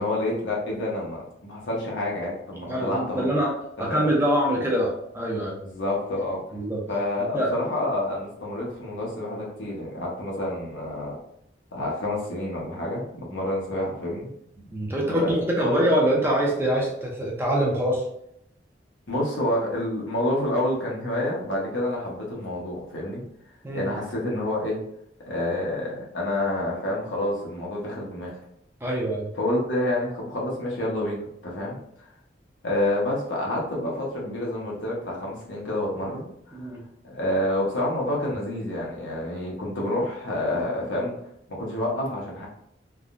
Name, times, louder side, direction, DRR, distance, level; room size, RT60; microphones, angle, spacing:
voice 1, 0.0-3.3 3.8-4.1 5.6-6.4 6.9-11.2 11.7-14.3 15.0-15.8 19.1-23.2 23.7-24.8 25.3-28.3 29.4-32.1 32.6-36.7 37.0-41.1 41.6-42.5, left 1 dB, 85° left, -3 dB, 1.0 m, -28 dB
voice 2, 2.7-3.5 3.8-5.6 6.5-6.8 7.2-7.5 14.6-18.0 23.6-23.9 28.8-29.3 36.5-36.8, right 1 dB, 15° right, -2 dB, 0.5 m, -24 dB
3.5 x 2.2 x 2.5 m, 0.74 s
head